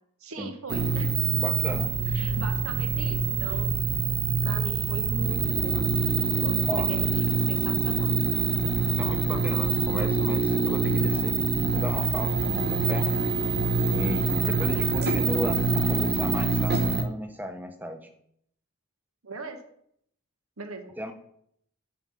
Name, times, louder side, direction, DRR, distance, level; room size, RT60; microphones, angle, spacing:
voice 1, 0.2-1.2 2.1-3.7 4.4-8.2 14.4-14.9 19.2-19.6 20.6-20.9, right 2 dB, 75° right, 7 dB, 1.1 m, -39 dB
sound 1, 0.7-17.0, right 4 dB, 45° right, 0.9 m, -25 dB
voice 2, 1.4-1.9 6.7-6.9 8.6-11.4 11.7-13.1 13.9-18.1 21.0-21.1, equal, 10° right, 7 dB, 0.7 m, -35 dB
7.4 x 6.2 x 5.6 m, 0.70 s
head